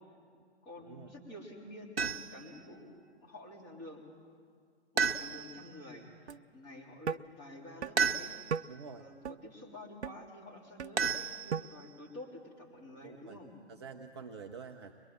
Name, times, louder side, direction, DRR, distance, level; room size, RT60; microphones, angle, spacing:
voice 1, 0.6-4.1 5.0-8.4 9.0-13.6, left 1 dB, 25° left, -1 dB, 3.6 m, -49 dB
sound 1, 2.0-2.5 5.0-5.7 8.0-8.7 11.0-11.8, right 6 dB, 60° right, 0.9 m, -32 dB
sound 2, 6.3-6.4 7.1-7.2 7.8-7.9 8.5-8.6 9.2-9.4 10.0-10.2 10.8-10.9 11.5-11.6, right 7 dB, 80° right, 0.5 m, -35 dB
voice 2, 8.7-9.1 13.0-13.4 13.7-14.9, right 5 dB, 25° right, 3 dB, 0.6 m, -47 dB
23.0 x 21.0 x 7.4 m, 2.1 s
figure-of-eight pair, 135°, 33 cm